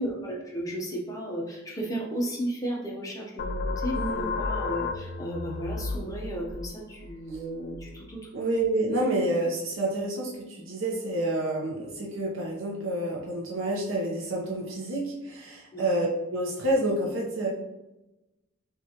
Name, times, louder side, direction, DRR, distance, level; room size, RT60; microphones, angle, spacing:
voice 1, 0.0-8.3 15.7-15.8, right 1 dB, 15° left, -1 dB, 0.7 m, -34 dB
sound 1, 3.4-8.7, left 3 dB, 50° left, 0.3 m, -34 dB
voice 2, 4.0-4.3 8.3-17.5, right 1 dB, 80° right, -3 dB, 0.8 m, -28 dB
6.0 x 2.5 x 2.8 m, 1.0 s
head